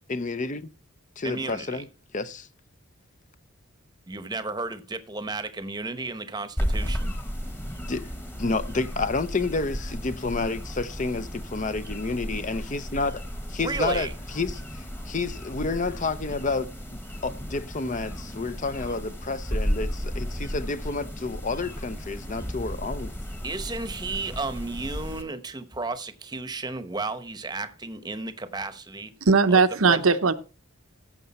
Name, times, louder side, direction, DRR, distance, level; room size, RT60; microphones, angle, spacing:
voice 1, 0.1-0.7 1.2-1.9 2.1-2.5 7.9-8.1 8.4-13.2 13.5-23.1, left 3 dB, 35° left, 0.6 m, -30 dB
voice 2, 1.2-1.8 4.1-7.2 13.6-14.1 23.4-29.1 29.5-29.6 29.9-30.0, right 3 dB, 20° right, 0.9 m, -33 dB
sound 1, 6.6-25.2, equal, 10° left, 1.2 m, -34 dB
voice 3, 29.3-30.3, right 4 dB, 75° right, 0.8 m, -19 dB
15.0 x 6.8 x 4.2 m
head